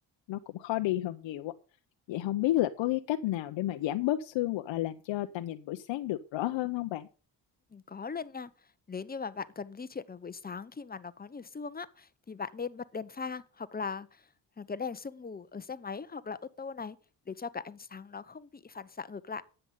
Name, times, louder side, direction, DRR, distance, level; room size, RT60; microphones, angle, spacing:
voice 1, 0.3-1.5 2.1-7.1, left 15 dB, 85° left, 0.7 m, -31 dB
voice 2, 7.7-8.5 8.9-14.2 14.6-17.0 17.3-19.4, left 5 dB, 20° left, 0.8 m, -39 dB
10.0 x 7.8 x 5.4 m
cardioid pair, 85°, 44 cm